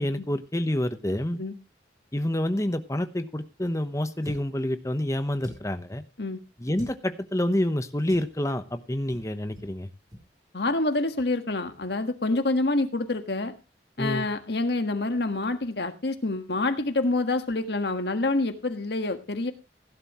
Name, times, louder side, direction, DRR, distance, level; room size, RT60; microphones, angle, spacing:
voice 1, 0.0-1.4 2.1-6.0 6.6-9.9 14.0-14.3, left 1 dB, 15° left, 9 dB, 1.0 m, -28 dB
sound 1, 4.2-4.6 5.4-5.8 6.7-7.0 8.1-8.3 9.1-9.3 9.5-9.7 10.1-10.2, equal, 20° right, 3.7 m, -41 dB
voice 2, 10.5-13.5 14.0-19.5, left 2 dB, 65° left, 8 dB, 1.5 m, -27 dB
16.5 x 11.0 x 3.0 m, 0.28 s
head